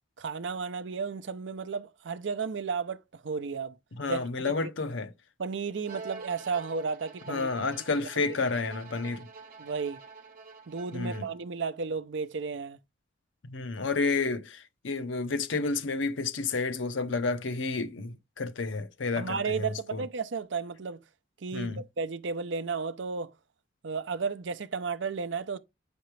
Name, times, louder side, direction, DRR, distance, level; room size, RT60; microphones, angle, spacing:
voice 1, 0.2-3.7 4.1-4.7 5.4-7.5 7.9-8.1 9.6-10.0 10.7-12.8 19.2-21.0 21.4-23.3 23.8-25.6, right 5 dB, 70° right, 0.6 m, -33 dB
voice 2, 3.9-5.1 7.3-9.3 10.9-11.3 13.4-20.0 21.5-21.8, left 3 dB, 80° left, 0.7 m, -31 dB
Bowed string instrument, 5.8-11.6, right 4 dB, 50° right, 1.1 m, -47 dB
6.7 x 5.2 x 3.2 m
head